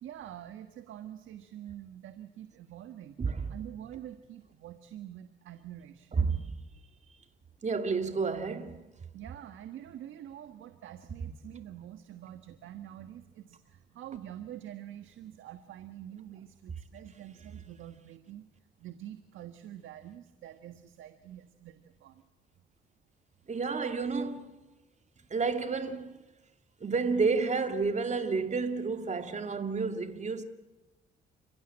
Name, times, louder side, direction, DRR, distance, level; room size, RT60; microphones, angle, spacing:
voice 1, 0.0-3.2 3.5-6.3 9.1-22.2, right 11 dB, 80° right, 1.5 m, -46 dB
voice 2, 3.2-3.6 6.1-6.4 7.6-8.8 23.5-24.6 25.3-26.1 26.8-30.4, right 4 dB, 35° right, 2.3 m, -30 dB
29.5 x 16.5 x 8.7 m
cardioid pair, 90°, 20 cm